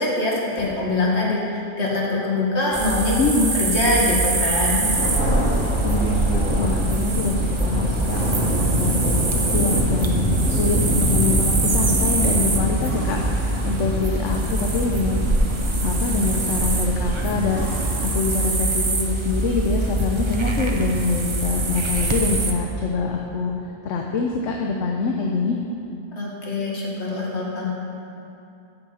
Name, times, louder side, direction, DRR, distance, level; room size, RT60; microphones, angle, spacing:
voice 1, 0.0-3.2 3.5-4.9 26.1-27.7, left 2 dB, 60° left, -4 dB, 2.2 m, -23 dB
sound 1, 2.7-22.5, right 2 dB, 30° right, 0.7 m, -24 dB
voice 2, 3.2-3.5 5.8-15.3 15.8-23.5 23.8-25.6, left 4 dB, 75° left, 1 dB, 1.1 m, -25 dB
sound 2, 3.8-4.4 4.9-5.5 5.9-6.6 8.1-9.4 12.8-14.1 16.6-17.0 17.5-18.9 21.0-21.1, right 1 dB, 45° right, 1.9 m, -37 dB
Thunder, 4.7-18.3, right 1 dB, 70° right, 2.0 m, -25 dB
8.9 x 6.5 x 7.5 m, 2.7 s
omnidirectional pair, 1.3 m